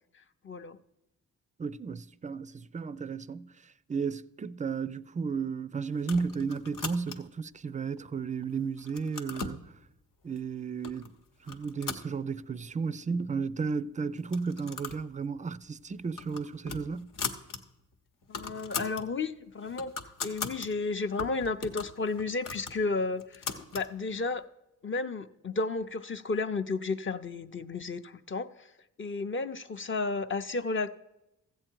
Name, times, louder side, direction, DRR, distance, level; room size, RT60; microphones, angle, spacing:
voice 1, 0.4-0.8 18.3-19.9 20.2-23.5 23.7-24.4 24.8-28.7 29.0-30.9, left 3 dB, 35° left, 0.6 m, -32 dB
voice 2, 1.6-3.5 3.9-9.6 10.2-11.1 11.4-17.1, right 5 dB, 25° right, 0.3 m, -33 dB
sound 1, 6.0-7.4 8.0-8.5 8.8-9.6 10.4-10.5 10.8-11.1 11.4-12.7 13.0-13.1 13.3-13.4 14.2-15.1 15.4-15.6 16.0-17.6 17.9-18.0 18.2-19.1 19.5-20.7 21.2-23.9, left 5 dB, 70° left, 1.0 m, -39 dB
14.0 x 7.7 x 4.6 m
cardioid pair, 60°, 33 cm